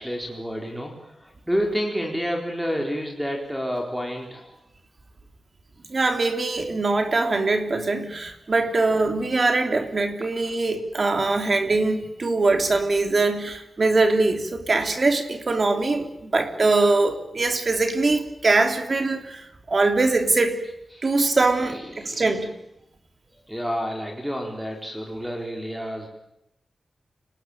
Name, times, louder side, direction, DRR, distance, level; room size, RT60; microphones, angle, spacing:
voice 1, 0.0-4.6 20.9-21.1 21.6-22.3 23.5-26.1, equal, 5° right, 1 dB, 4.4 m, -29 dB
voice 2, 5.9-20.6 21.0-22.5, right 3 dB, 35° right, 5 dB, 3.5 m, -22 dB
29.0 x 20.0 x 9.2 m, 0.83 s
wide cardioid pair, 180°, 0 cm